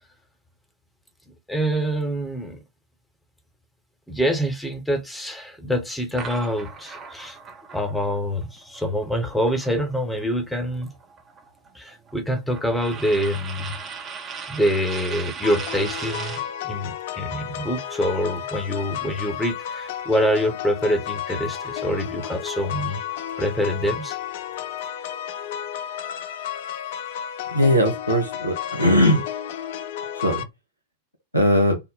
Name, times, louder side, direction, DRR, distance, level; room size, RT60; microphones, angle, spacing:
voice 1, 1.5-2.6 4.1-7.4 7.7-10.9 11.7-13.7 14.5-16.4 16.6-23.0 23.4-24.1, equal, 5° left, 1.0 m, -25 dB
sound 1, 6.2-10.2 10.5-16.5, right 5 dB, 25° right, 0.8 m, -38 dB
sound 2, 15.4-30.4, left 10 dB, 55° left, 0.3 m, -32 dB
voice 2, 27.5-29.2 30.2-30.4 31.3-31.8, equal, 90° left, 1.0 m, -19 dB
3.6 x 2.1 x 4.0 m
figure-of-eight pair, 90°, 0 cm